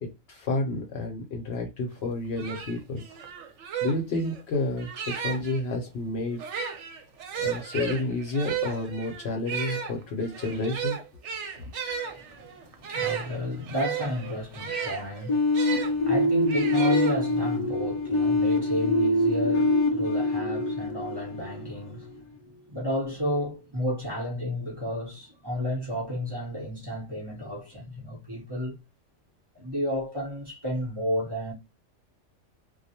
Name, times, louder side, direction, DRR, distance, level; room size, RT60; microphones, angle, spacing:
voice 1, 0.0-3.0 3.8-6.4 7.4-11.0, left 2 dB, 65° left, 0.8 m, -30 dB
sound 1, 2.0-2.1 2.4-5.6 6.3-15.9 16.5-17.6, right 7 dB, 75° right, 0.9 m, -34 dB
voice 2, 12.0-28.8 29.5-31.5, equal, 25° right, 0.8 m, -32 dB
sound 2, 15.3-22.0, left 2 dB, 35° left, 0.4 m, -25 dB
2.3 x 2.1 x 2.7 m
omnidirectional pair, 1.3 m